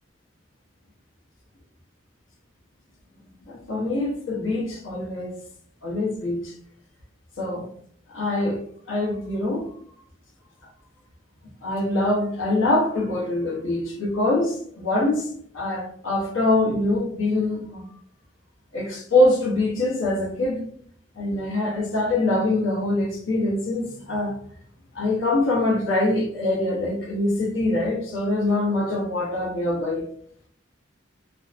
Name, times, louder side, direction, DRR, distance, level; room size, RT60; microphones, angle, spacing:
voice 1, 3.5-5.4 5.8-6.5 7.4-7.7 8.1-8.6 8.9-9.6 11.6-15.3 15.5-17.9 18.7-20.6 21.2-24.4 24.9-30.0, left 2 dB, 85° left, 0.8 m, -24 dB
2.6 x 2.1 x 2.4 m
head